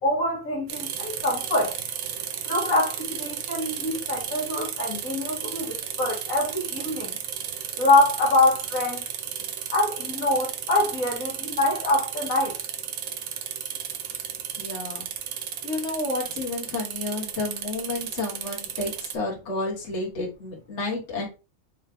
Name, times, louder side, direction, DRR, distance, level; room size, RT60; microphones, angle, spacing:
voice 1, 0.0-1.8 2.4-7.2 7.8-9.0 9.7-12.6, left 2 dB, 70° left, 1.8 m, -24 dB
sound 1, 0.7-19.1, right 9 dB, 80° right, 1.1 m, -34 dB
voice 2, 14.6-15.1 15.6-21.3, left 2 dB, 55° left, 1.7 m, -31 dB
4.8 x 3.3 x 3.3 m
omnidirectional pair, 1.5 m